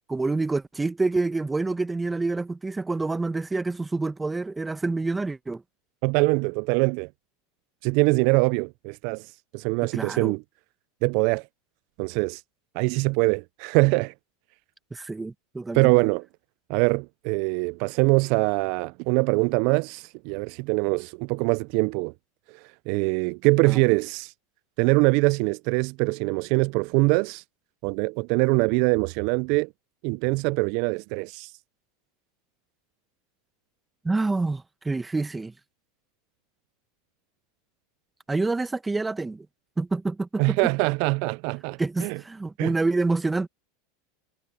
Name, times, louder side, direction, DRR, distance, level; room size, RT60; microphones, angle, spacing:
voice 1, 0.1-5.6 9.9-10.3 14.9-15.9 23.6-23.9 34.0-35.5 38.3-39.5 39.8-40.6 41.8-43.5, right 3 dB, 10° right, 1.2 m, -27 dB
voice 2, 6.0-7.1 7.8-10.4 11.0-11.4 12.0-12.4 12.8-14.1 15.7-16.3 16.7-22.1 22.9-24.3 24.8-27.4 27.8-29.7 30.0-31.5 40.4-42.2 42.6-42.7, right 29 dB, 60° right, 0.4 m, -23 dB
hypercardioid pair, 100°, 0 cm